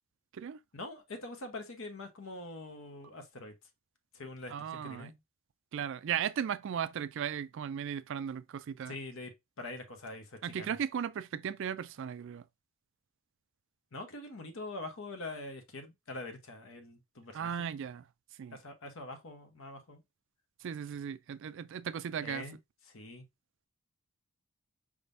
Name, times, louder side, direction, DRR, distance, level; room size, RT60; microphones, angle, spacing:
voice 1, 0.7-3.5 4.1-5.2 8.9-9.3 9.6-10.7 13.9-17.7 18.5-20.0 22.2-22.6 22.9-23.2, left 2 dB, 60° left, 1.0 m, -44 dB
voice 2, 4.5-5.1 5.7-9.0 10.4-12.5 17.3-18.1 18.4-18.6 20.6-22.5, right 8 dB, 55° right, 0.3 m, -36 dB
4.9 x 3.6 x 2.6 m
head